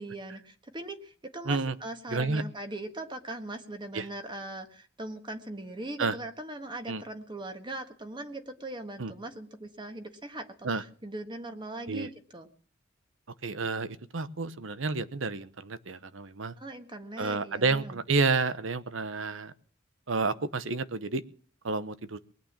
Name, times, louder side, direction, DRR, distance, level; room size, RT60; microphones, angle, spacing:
voice 1, 0.0-12.5 16.6-18.0, right 2 dB, 25° right, 7 dB, 1.5 m, -40 dB
voice 2, 1.4-1.8 2.1-2.4 3.9-4.1 6.0-6.1 6.9-7.0 9.0-9.1 10.6-10.8 11.9-12.1 13.4-16.5 17.2-19.5 20.1-21.2 21.6-22.2, right 4 dB, 90° right, 15 dB, 1.0 m, -30 dB
20.0 x 9.1 x 7.3 m, 0.44 s
head